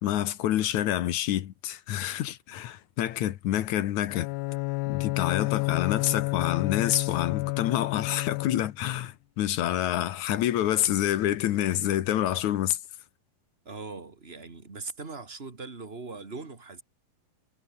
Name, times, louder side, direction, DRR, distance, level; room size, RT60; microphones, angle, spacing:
voice 1, 0.0-4.3 4.9-12.8, left 12 dB, 65° left, 2.0 m, -27 dB
Bowed string instrument, 4.1-8.9, left 21 dB, 85° left, 2.7 m, -30 dB
voice 2, 13.6-16.8, right 4 dB, 25° right, 1.5 m, -40 dB
omnidirectional pair, 4.6 m